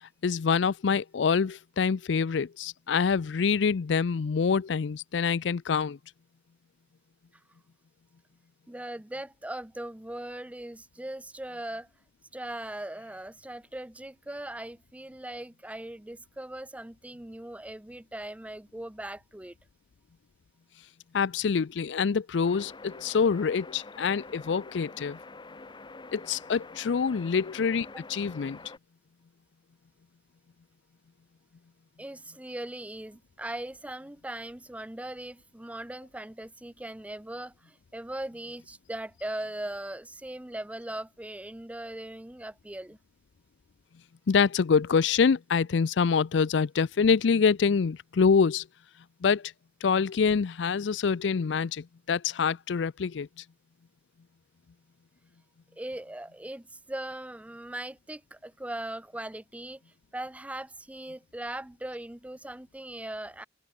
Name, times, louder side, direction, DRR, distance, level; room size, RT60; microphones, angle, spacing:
voice 1, 0.2-6.0 21.1-25.2 26.1-28.6 44.3-48.6 49.2-49.4 49.8-53.3, left 5 dB, 70° left, 0.5 m, -26 dB
voice 2, 8.7-11.9 12.3-19.6 27.9-28.0 32.0-43.0 55.7-59.8 60.1-63.4, right 1 dB, 10° right, 0.6 m, -39 dB
sound 1, 22.4-28.8, left 3 dB, 25° left, 0.9 m, -46 dB
head